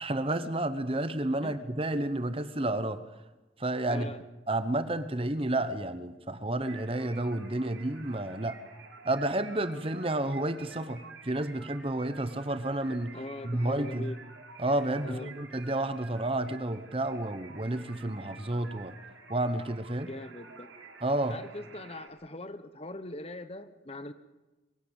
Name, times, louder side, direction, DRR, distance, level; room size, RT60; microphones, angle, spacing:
voice 1, 0.0-3.0 3.6-4.1 4.5-8.6 9.0-13.1 13.4-14.1 14.6-19.0 19.3-20.1 21.0-21.4, right 1 dB, 30° right, 12 dB, 0.9 m, -31 dB
voice 2, 3.9-4.2 13.1-14.2 15.0-15.3 20.1-20.7 21.3-24.1, left 2 dB, 30° left, 12 dB, 1.0 m, -41 dB
sound 1, 6.6-22.1, right 4 dB, 90° right, 4.0 m, -50 dB
23.0 x 16.5 x 8.8 m, 1.1 s
head